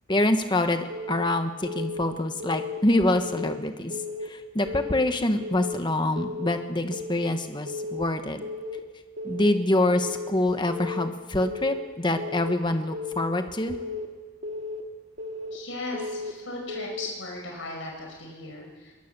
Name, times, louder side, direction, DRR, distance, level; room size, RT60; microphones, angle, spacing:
voice 1, 0.1-3.9 4.2-8.4 9.2-13.8, left 1 dB, 20° left, 7 dB, 1.3 m, -25 dB
Keyboard (musical) / Alarm, 0.9-1.3 1.6-2.0 2.4-2.8 3.1-3.5 3.9-4.3 4.7-5.0 5.4-5.8 6.2-6.5 6.9-7.3 7.7-8.0 8.4-8.8 9.2-9.5 9.9-10.3 10.7-11.0 11.4-11.8 12.2-12.6 12.9-13.3 13.7-14.1 14.4-14.8 15.2-15.6 15.9-16.3 16.7-17.1, left 3 dB, 60° right, 2.2 m, -34 dB
voice 2, 15.5-19.0, left 2 dB, 70° left, 0 dB, 5.3 m, -37 dB
22.5 x 18.5 x 6.9 m, 1.3 s
head